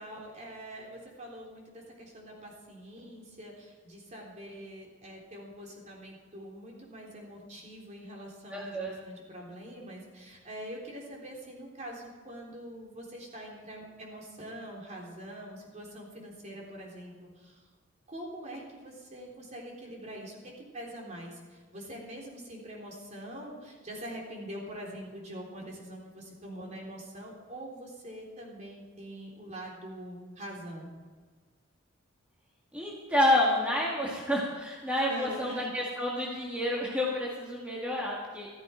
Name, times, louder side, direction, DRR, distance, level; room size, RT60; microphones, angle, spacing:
voice 1, 0.0-17.6 18.1-30.9 35.1-35.7, right 1 dB, 35° right, -2 dB, 3.5 m, -44 dB
voice 2, 8.5-8.9 32.7-38.5, left 1 dB, 5° right, -4 dB, 1.9 m, -29 dB
14.5 x 14.0 x 4.5 m, 1.4 s
head